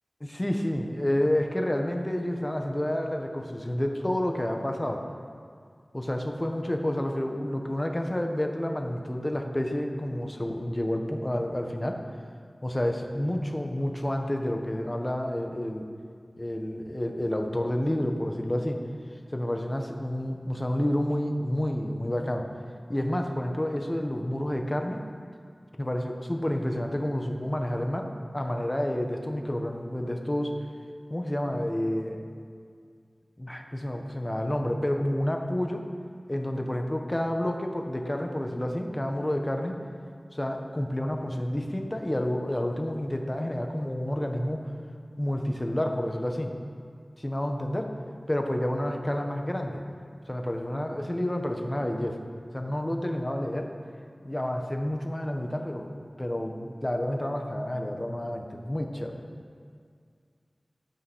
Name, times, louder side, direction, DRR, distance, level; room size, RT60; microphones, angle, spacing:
voice 1, 0.2-5.0 5.9-12.0 12.6-15.9 16.4-18.8 19.3-22.5 22.9-25.0 25.8-28.1 28.3-30.5 31.1-32.2 33.4-35.8 36.3-39.8 40.3-44.7 45.2-46.5 47.2-47.9 48.3-49.8 50.3-52.2 52.5-53.7 54.2-59.2, left 1 dB, 25° left, 3 dB, 1.5 m, -29 dB
13.5 x 8.8 x 6.3 m, 2.2 s
wide cardioid pair, 40°, 0 cm